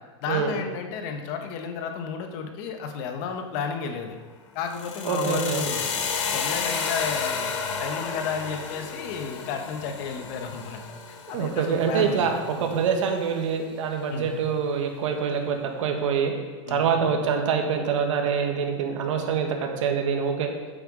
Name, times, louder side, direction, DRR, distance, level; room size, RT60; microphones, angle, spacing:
voice 1, 0.2-4.2 4.5-5.9 6.3-7.5 7.8-10.8 11.1-12.4 14.1-14.3 16.7-16.8, left 6 dB, 45° left, 5 dB, 1.2 m, -32 dB
sound 1, 4.7-12.7, left 5 dB, 65° left, 1.4 m, -32 dB
voice 2, 5.0-5.6 11.3-16.3 16.7-20.5, right 6 dB, 75° right, 3 dB, 1.6 m, -25 dB
8.7 x 7.9 x 5.1 m, 1.4 s
supercardioid pair, 155°, 16 cm